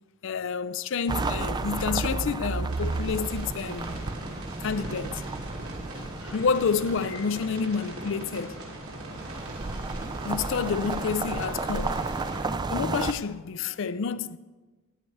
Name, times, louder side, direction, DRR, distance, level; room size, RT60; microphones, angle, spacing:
voice 1, 0.2-4.0 4.6-5.2 6.0-8.6 10.2-12.0 12.7-14.4, left 5 dB, 60° left, 0.4 m, -29 dB
sound 1, 1.1-7.6 8.7-13.1, right 3 dB, 20° right, 0.3 m, -32 dB
sound 2, 2.7-12.4, right 1 dB, 85° right, 3.2 m, -40 dB
14.0 x 11.0 x 3.3 m
head